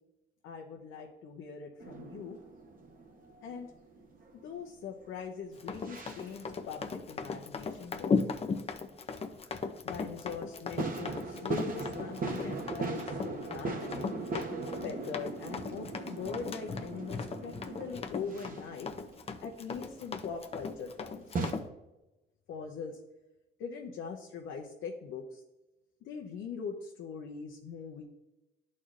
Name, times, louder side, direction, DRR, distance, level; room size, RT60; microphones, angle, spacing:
voice 1, 0.4-2.4 3.4-3.7 4.3-8.2 9.8-14.1 14.8-18.9 19.4-21.4 22.5-23.0 23.6-25.4 26.0-28.0, left 5 dB, 80° left, 0 dB, 0.7 m, -42 dB
sound 1, 1.8-5.3 5.7-6.4 9.3-9.4 10.8-21.5, right 3 dB, 45° right, 1.0 m, -40 dB
Run, 5.6-21.7, left 4 dB, 30° left, 0.5 m, -37 dB
11.0 x 4.2 x 2.5 m, 1.0 s
cardioid pair, 90°, 20 cm